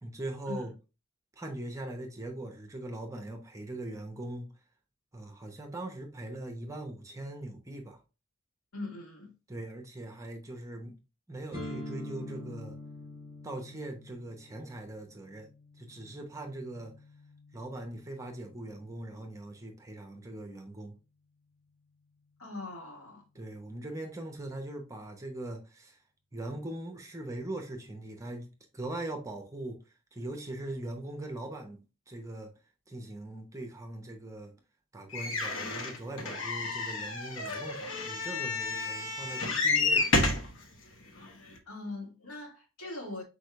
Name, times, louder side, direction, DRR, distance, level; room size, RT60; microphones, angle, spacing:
voice 1, 0.0-0.7 1.4-4.5 5.1-8.0 9.5-10.9 11.3-12.8 13.4-15.5 15.8-16.9 17.5-20.9 23.3-26.0 26.3-28.5 28.7-29.8 30.1-32.5 32.9-34.5 34.9-40.1, right 1 dB, 15° right, 0.8 m, -41 dB
voice 2, 8.7-9.3 22.4-23.2 41.1-41.2 41.7-43.2, left 2 dB, 90° left, 2.0 m, -41 dB
sound 1, 11.5-19.3, left 1 dB, 30° left, 2.1 m, -46 dB
sound 2, 35.1-40.5 41.2-41.3 41.6-41.7, left 3 dB, 65° left, 1.0 m, -30 dB
4.9 x 4.3 x 2.4 m
head